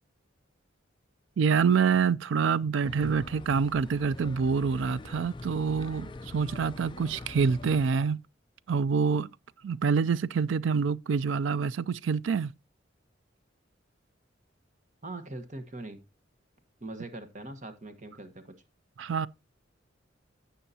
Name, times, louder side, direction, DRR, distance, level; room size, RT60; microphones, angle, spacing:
voice 1, 1.4-8.2 8.7-9.3 9.6-12.5 19.0-19.3, right 5 dB, 75° right, 0.4 m, -26 dB
sound 1, 2.8-7.9, left 2 dB, 25° left, 0.4 m, -43 dB
voice 2, 15.0-16.0 16.8-18.5, right 2 dB, 40° right, 1.2 m, -41 dB
16.0 x 5.7 x 2.8 m
head